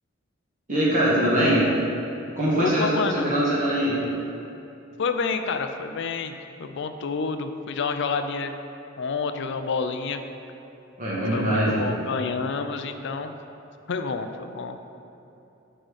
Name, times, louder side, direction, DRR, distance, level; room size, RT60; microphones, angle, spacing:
voice 1, 0.7-1.7 2.3-4.0 11.0-11.8, right 1 dB, 40° right, -8 dB, 1.5 m, -22 dB
voice 2, 2.5-3.3 5.0-6.3 6.6-8.5 9.0-10.2 11.3-13.3 13.9-14.9, left 4 dB, 60° left, 8 dB, 0.4 m, -28 dB
8.9 x 3.8 x 6.4 m, 2.9 s
head